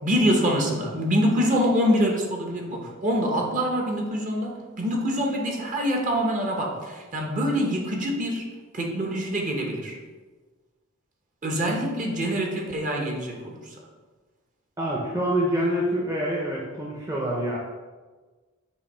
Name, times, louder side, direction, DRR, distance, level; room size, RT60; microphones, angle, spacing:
voice 1, 0.0-8.5 8.7-10.0 11.4-13.5, equal, 40° right, 0 dB, 1.0 m, -25 dB
voice 2, 14.8-17.6, equal, 15° right, -3 dB, 0.7 m, -26 dB
7.0 x 2.7 x 5.4 m, 1.3 s
head